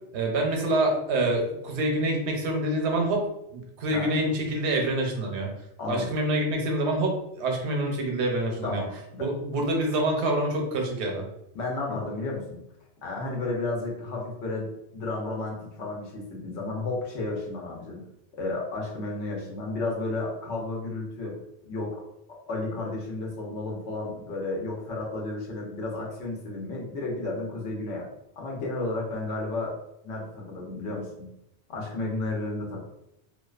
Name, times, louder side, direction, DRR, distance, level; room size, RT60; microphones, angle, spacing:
voice 1, 0.1-3.2 3.5-5.5 5.9-8.8 9.2-11.2, right 1 dB, 80° right, 1 dB, 0.9 m, -26 dB
voice 2, 5.8-6.1 8.6-9.3 11.5-12.6 13.0-18.0 18.4-21.3 21.6-22.0 22.5-28.1 28.4-29.7 30.0-31.3 31.7-32.8, left 2 dB, 90° left, -2 dB, 1.0 m, -32 dB
2.4 x 2.2 x 2.3 m, 0.82 s
omnidirectional pair, 1.1 m